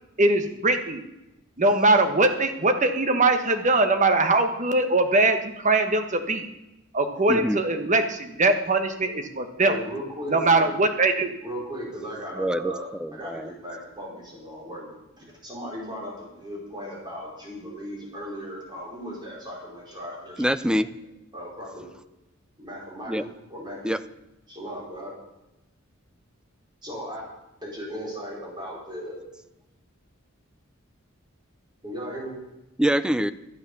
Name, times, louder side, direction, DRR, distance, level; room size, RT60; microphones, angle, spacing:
voice 1, 0.2-1.0 1.6-6.5 6.9-9.8 10.3-11.4, right 2 dB, 35° right, 7 dB, 1.2 m, -21 dB
voice 2, 7.3-7.6 12.4-12.7 13.0-13.5 20.4-20.9 23.1-23.2 23.8-24.0 32.8-33.3, equal, 5° right, 13 dB, 0.4 m, -24 dB
voice 3, 9.6-10.4 11.4-20.6 21.3-21.9 22.6-23.8 24.5-25.1 26.8-27.2 27.6-29.2 31.8-32.3, equal, 20° right, -4 dB, 5.0 m, -37 dB
12.5 x 9.0 x 6.9 m, 0.93 s
head